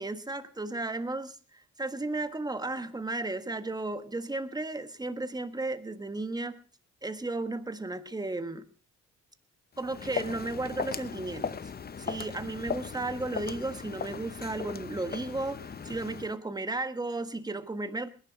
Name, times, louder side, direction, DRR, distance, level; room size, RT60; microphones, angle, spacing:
voice 1, 0.0-6.6 7.0-8.7 9.8-11.6 12.0-18.1, right 2 dB, 15° right, 10 dB, 1.4 m, -34 dB
Walk footsteps, 9.7-16.3, left 6 dB, 30° left, 0.8 m, -38 dB
20.0 x 11.0 x 4.6 m, 0.39 s
cardioid pair, 90°, 30 cm